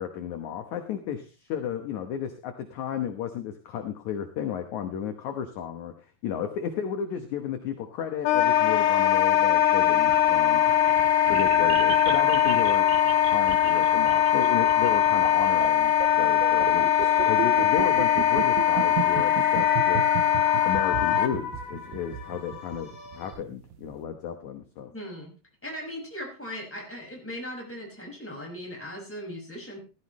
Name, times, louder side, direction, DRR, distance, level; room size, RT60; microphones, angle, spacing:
voice 1, 0.0-5.9 6.2-10.6 11.3-12.9 13.2-20.0 20.6-24.9, left 8 dB, 65° left, 6 dB, 2.1 m, -33 dB
Wind instrument woodwind instrument, 8.3-21.3, left 10 dB, 80° left, 3.1 m, -21 dB
sound 1, 8.3-23.3, left 3 dB, 35° left, 7.9 m, -38 dB
sound 2, 9.8-24.0, right 10 dB, 85° right, 2.9 m, -35 dB
voice 2, 24.9-25.3 25.6-29.8, equal, 5° left, -1 dB, 5.1 m, -38 dB
15.5 x 13.5 x 3.1 m, 0.32 s
omnidirectional pair, 4.4 m